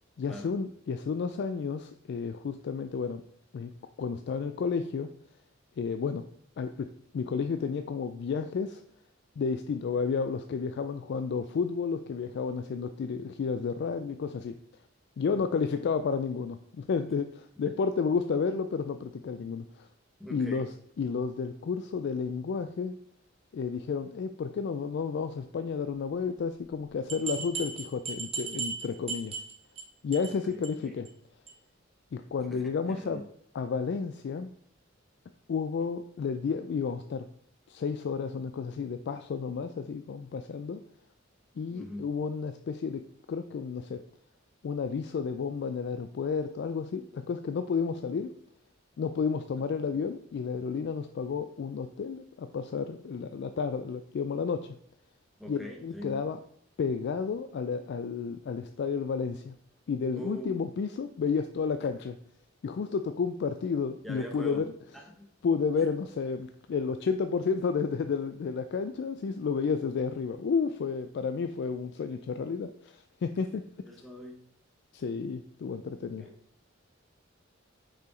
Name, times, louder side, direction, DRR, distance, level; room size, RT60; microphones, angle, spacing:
voice 1, 0.2-3.2 3.5-3.7 4.0-5.1 5.8-6.2 6.6-8.8 9.4-14.5 15.2-19.9 20.3-20.7 21.0-23.0 23.5-29.4 30.0-31.1 32.1-33.2 33.5-34.5 35.5-37.3 37.7-40.8 41.6-43.0 43.3-44.0 44.6-48.3 49.0-54.8 55.5-56.4 56.8-59.5 59.9-62.2 62.6-64.7 65.4-73.6 74.9-76.3, left 5 dB, 60° left, 9 dB, 0.3 m, -31 dB
voice 2, 20.2-20.7 30.3-31.0 32.5-33.2 41.7-42.0 55.4-56.3 60.1-60.7 64.0-64.6 64.9-65.3 73.8-74.4 76.2-76.3, equal, ahead, 1 dB, 0.8 m, -43 dB
sound 1, 26.7-26.8 27.1-29.8 30.1-30.4 30.6-30.7 31.1-31.2 31.5-31.6, right 5 dB, 30° right, 1.2 m, -36 dB
5.6 x 4.9 x 3.8 m, 0.67 s
head